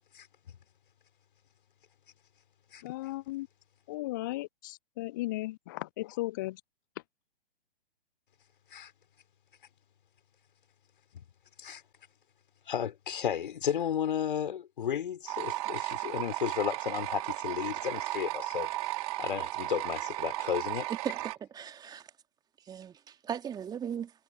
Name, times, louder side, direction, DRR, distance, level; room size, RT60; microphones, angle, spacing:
voice 1, 2.8-3.5 3.9-6.6, left 18 dB, 20° left, 0.4 m, -36 dB
voice 2, 12.7-18.7 19.2-20.9, left 9 dB, 55° left, 4.5 m, -33 dB
sound 1, 15.3-21.4, right 17 dB, 35° right, 3.1 m, -35 dB
voice 3, 21.0-22.1 22.7-24.1, right 8 dB, 15° right, 2.8 m, -38 dB
figure-of-eight pair, 120°, 31 cm